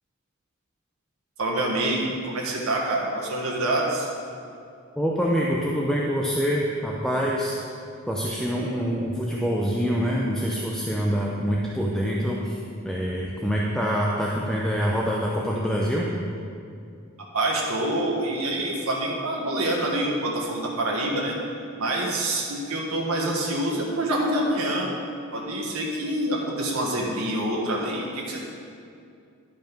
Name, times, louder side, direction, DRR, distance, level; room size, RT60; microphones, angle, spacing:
voice 1, 1.4-4.1 17.3-21.3 21.8-24.9 25.3-28.4, right 1 dB, 85° right, -2 dB, 1.4 m, -26 dB
voice 2, 5.0-7.6 8.1-12.6 12.8-16.1, equal, 5° left, -3 dB, 0.6 m, -25 dB
11.5 x 5.2 x 5.2 m, 2.4 s
head